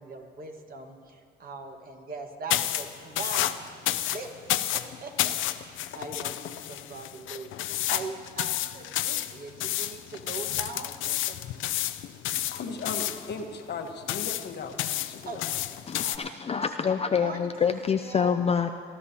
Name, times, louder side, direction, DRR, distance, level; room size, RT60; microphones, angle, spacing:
voice 1, 0.0-11.4 15.3-15.6 16.0-16.4 17.1-18.3, right 3 dB, 45° right, 4 dB, 1.5 m, -41 dB
sound 1, 2.5-16.2, left 13 dB, 80° left, 0.5 m, -31 dB
voice 2, 12.3-15.5, left 4 dB, 60° left, 5 dB, 1.2 m, -37 dB
voice 3, 15.9-18.7, left 6 dB, 30° left, 6 dB, 0.4 m, -26 dB
23.5 x 12.5 x 2.8 m, 2.3 s
cardioid pair, 90°, 20 cm